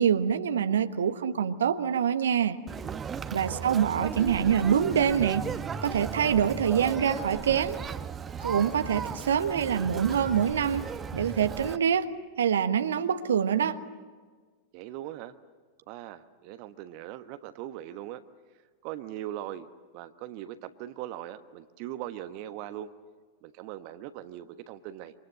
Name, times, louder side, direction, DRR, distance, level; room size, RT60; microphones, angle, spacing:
voice 1, 0.0-2.6 3.3-5.4 5.8-7.8 8.4-10.8 11.1-12.1 12.4-13.8, right 8 dB, 65° right, 9 dB, 1.4 m, -25 dB
Conversation, 2.7-11.8, right 6 dB, 20° right, 1.2 m, -36 dB
voice 2, 3.3-3.8 14.7-15.3 15.9-18.2 18.8-19.7 19.9-22.9 23.4-25.1, right 12 dB, 45° right, 10 dB, 1.2 m, -40 dB
28.5 x 26.5 x 7.9 m, 1.5 s
figure-of-eight pair, 90°, 0 cm